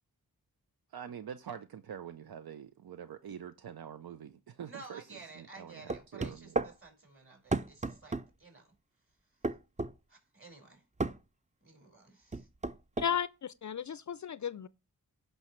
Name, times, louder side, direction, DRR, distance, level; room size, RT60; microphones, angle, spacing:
voice 1, 0.9-6.6, right 8 dB, 75° right, 0.6 m, -45 dB
voice 2, 4.6-8.7 10.1-10.8 11.6-12.5, right 3 dB, 35° right, 4.5 m, -53 dB
sound 1, 5.9-6.7 7.5-8.3 9.4-9.9 11.0-11.2 12.3-13.1, right 3 dB, 20° right, 0.5 m, -33 dB
voice 3, 13.0-14.7, left 8 dB, 50° left, 0.4 m, -34 dB
16.0 x 5.5 x 3.1 m
cardioid pair, 55°, 37 cm